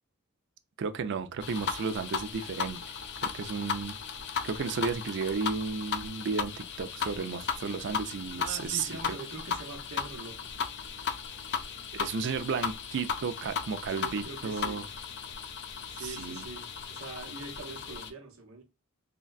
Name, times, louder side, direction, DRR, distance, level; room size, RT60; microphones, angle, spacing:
voice 1, 0.8-2.8 3.2-4.0 4.4-6.5 6.8-9.2 11.9-14.8 16.0-16.4, right 5 dB, 55° right, 0.4 m, -33 dB
sound 1, 1.4-18.1, left 6 dB, 55° left, 0.4 m, -36 dB
voice 2, 8.4-10.5 14.0-14.8 15.9-18.6, right 3 dB, 75° right, 0.9 m, -43 dB
3.8 x 2.1 x 2.3 m
head